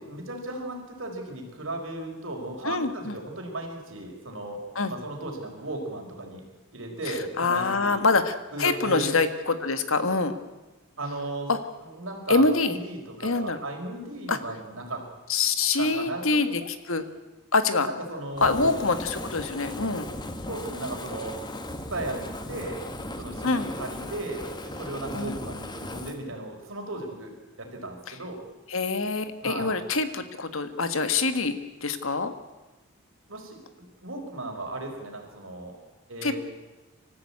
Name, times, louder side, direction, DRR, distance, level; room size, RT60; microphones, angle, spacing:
voice 1, 0.0-4.6 4.9-6.4 6.7-8.0 8.5-9.2 11.0-11.5 11.8-15.0 15.8-16.4 17.8-18.9 20.5-21.4 21.9-22.8 23.2-27.3 27.6-28.4 29.4-29.8 33.3-33.6 34.0-35.8 36.1-36.4, right 2 dB, 65° right, 1 dB, 4.9 m, -35 dB
voice 2, 2.6-3.1 4.7-4.9 7.4-8.3 8.6-10.3 11.5-11.6 12.3-12.8 13.2-13.6 14.3-14.4 15.3-17.0 17.5-17.9 18.4-20.1 23.4-23.7 25.1-25.4 28.1-28.2 28.7-32.3 36.2-36.4, left 3 dB, 70° left, 10 dB, 1.6 m, -25 dB
Fire, 18.4-26.2, left 1 dB, 20° left, 1.4 m, -37 dB
25.5 x 14.5 x 8.6 m, 1.2 s
head